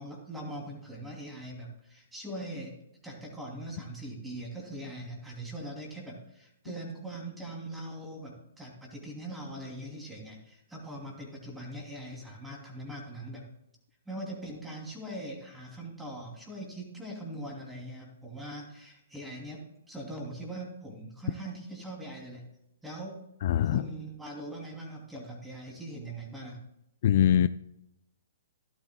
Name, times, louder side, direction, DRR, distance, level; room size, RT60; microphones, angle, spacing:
voice 1, 0.0-2.8 3.0-13.5 14.1-22.5 22.8-23.3 23.6-26.6, right 1 dB, 5° right, -1 dB, 2.8 m, -41 dB
voice 2, 23.4-23.8 27.0-27.5, left 10 dB, 55° left, 14 dB, 0.3 m, -22 dB
13.5 x 11.5 x 2.2 m, 0.84 s
hypercardioid pair, 140°, 0 cm